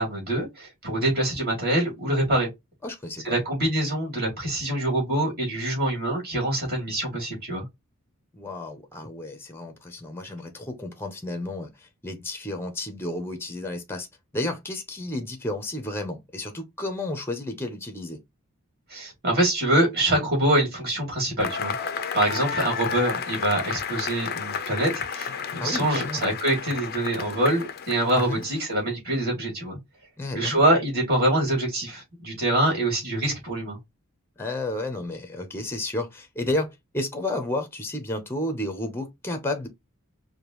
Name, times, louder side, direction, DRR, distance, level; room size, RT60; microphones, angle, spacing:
voice 1, 0.0-2.5 3.2-7.6 18.9-21.7 22.1-29.8 30.3-33.8, right 1 dB, 45° right, 2.5 m, -25 dB
voice 2, 2.8-3.4 8.3-14.1 14.3-18.2 25.6-26.2 28.1-28.4 30.2-30.6 34.4-39.7, left 1 dB, 10° left, 0.7 m, -32 dB
Cheering / Applause / Crowd, 21.4-28.6, left 7 dB, 45° left, 0.5 m, -32 dB
5.1 x 2.2 x 3.0 m
head